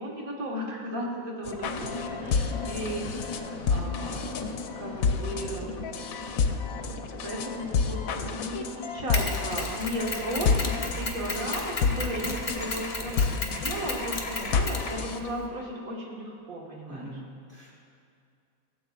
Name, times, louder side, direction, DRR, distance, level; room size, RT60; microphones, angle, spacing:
voice 1, 0.0-4.5 4.8-5.7 7.2-17.1, right 1 dB, 80° right, -2 dB, 1.9 m, -35 dB
sound 1, 1.5-15.3, left 5 dB, 85° left, 1.0 m, -30 dB
sound 2, 1.6-9.0, left 3 dB, 65° left, 1.2 m, -40 dB
Mechanisms, 9.1-15.5, left 2 dB, 30° left, 0.7 m, -34 dB
voice 2, 16.9-17.7, equal, 10° left, -5 dB, 2.0 m, -43 dB
16.0 x 7.8 x 2.4 m, 2.4 s
omnidirectional pair, 1.5 m